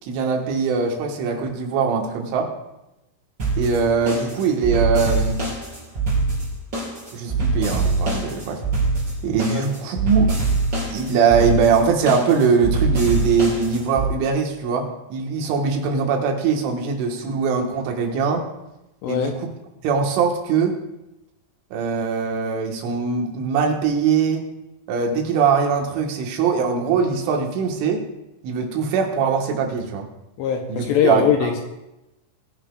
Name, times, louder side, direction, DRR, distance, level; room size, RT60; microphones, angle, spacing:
voice 1, 0.0-2.5 3.6-5.4 7.1-8.6 9.2-10.3 10.9-18.5 19.1-19.3 19.8-20.8 21.7-24.5 24.9-28.0 28.4-30.1 30.7-31.5, right 5 dB, 80° right, 1 dB, 3.9 m, -21 dB
sound 1, 3.4-14.1, right 3 dB, 25° right, 4.0 m, -24 dB
voice 2, 19.0-19.4 30.4-31.6, left 8 dB, 80° left, 3 dB, 2.7 m, -21 dB
20.5 x 10.5 x 2.4 m, 0.93 s
omnidirectional pair, 5.5 m